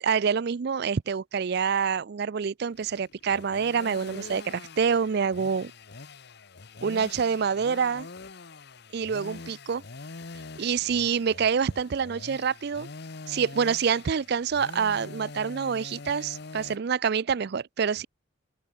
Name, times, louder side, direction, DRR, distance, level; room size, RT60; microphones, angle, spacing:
voice 1, 0.0-5.7 6.8-8.1 8.9-9.8 10.6-12.9 13.3-18.1, right 6 dB, 55° right, 0.4 m, -27 dB
sound 1, 2.7-16.8, left 3 dB, 55° left, 1.0 m, -44 dB
open air
head